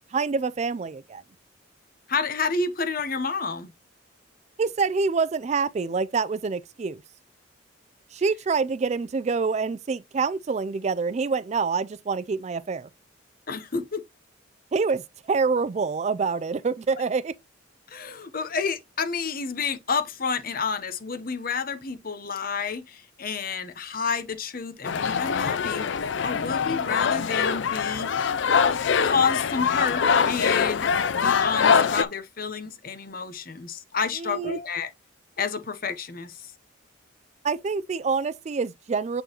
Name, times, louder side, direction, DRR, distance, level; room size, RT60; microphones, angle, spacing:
voice 1, 0.1-1.2 4.6-7.0 8.1-12.9 14.7-15.0 15.3-17.3 34.2-34.6 37.4-39.2, right 4 dB, 35° right, 0.3 m, -26 dB
voice 2, 2.1-3.7 13.5-14.0 17.9-25.8 26.2-28.1 28.7-34.9 35.4-36.5, left 5 dB, 45° left, 0.9 m, -30 dB
sound 1, 24.8-32.0, left 6 dB, 60° left, 0.4 m, -23 dB
9.0 x 3.9 x 2.9 m
head